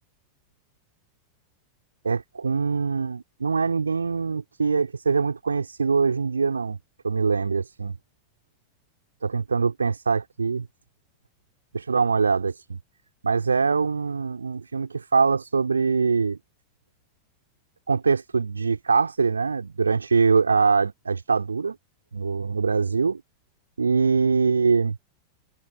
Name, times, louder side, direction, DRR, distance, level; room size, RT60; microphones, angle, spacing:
voice 1, 2.0-6.8 7.0-7.9 9.2-10.7 11.7-12.8 13.2-16.4 17.9-21.8 22.1-23.2 23.8-25.0, right 5 dB, 75° right, 3.9 m, -23 dB
figure-of-eight pair, 90°, 0 cm